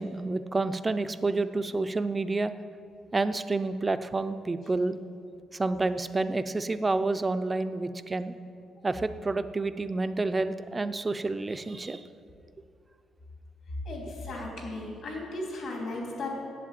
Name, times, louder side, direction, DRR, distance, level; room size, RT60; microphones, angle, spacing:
voice 1, 0.0-2.5 3.1-5.0 5.5-8.3 8.8-12.1, right 3 dB, 25° right, 11 dB, 0.5 m, -29 dB
voice 2, 13.8-16.3, left 2 dB, 65° left, -1 dB, 3.1 m, -36 dB
8.1 x 7.6 x 8.5 m, 2.5 s
cardioid pair, 90°, 0 cm